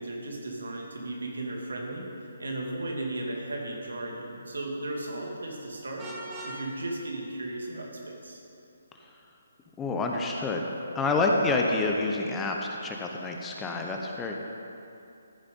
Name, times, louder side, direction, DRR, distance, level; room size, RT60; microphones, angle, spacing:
voice 1, 0.0-2.1 2.4-6.1 6.4-8.4, right 2 dB, 75° right, 0 dB, 2.3 m, -35 dB
Vehicle horn car horn honking, 6.0-6.6, right 2 dB, 20° right, 1.9 m, -39 dB
voice 2, 9.8-10.6 10.9-14.3, left 3 dB, 10° left, 1 dB, 0.8 m, -28 dB
14.0 x 6.9 x 5.4 m, 2.8 s
figure-of-eight pair, 145°, 0 cm